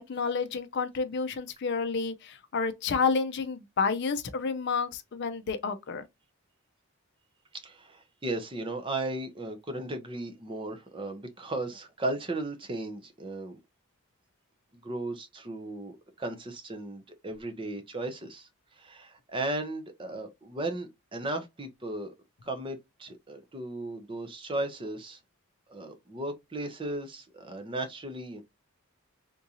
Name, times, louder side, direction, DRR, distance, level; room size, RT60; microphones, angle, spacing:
voice 1, 0.0-6.0, left 5 dB, 50° left, 0.5 m, -30 dB
voice 2, 7.6-13.6 14.7-18.5 18.8-22.1 22.4-25.2 25.7-28.4, right 2 dB, 25° right, 0.6 m, -36 dB
3.6 x 2.6 x 2.8 m
head